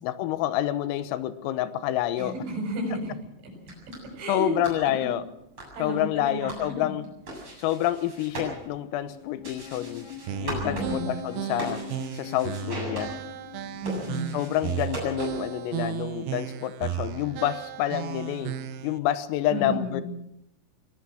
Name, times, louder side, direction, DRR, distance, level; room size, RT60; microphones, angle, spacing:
voice 1, 0.0-2.3 4.3-5.2 5.8-7.1 7.6-10.1 10.4-11.8 12.1-13.1 14.3-18.6 18.8-20.0, left 12 dB, 85° left, 13 dB, 3.7 m, -28 dB
voice 2, 2.2-3.1 4.2-4.5 4.8-5.1 5.7-6.9 7.4-7.7 10.6-11.1 13.8-14.3 19.5-20.0, equal, 65° right, 2 dB, 8.8 m, -32 dB
sound 1, 3.5-15.6, right 1 dB, 25° right, 8.3 m, -41 dB
sound 2, 8.9-14.1, left 12 dB, 50° left, 3.6 m, -43 dB
sound 3, 10.3-19.0, right 9 dB, 80° right, 2.3 m, -34 dB
23.0 x 18.5 x 6.4 m, 0.80 s
omnidirectional pair, 5.9 m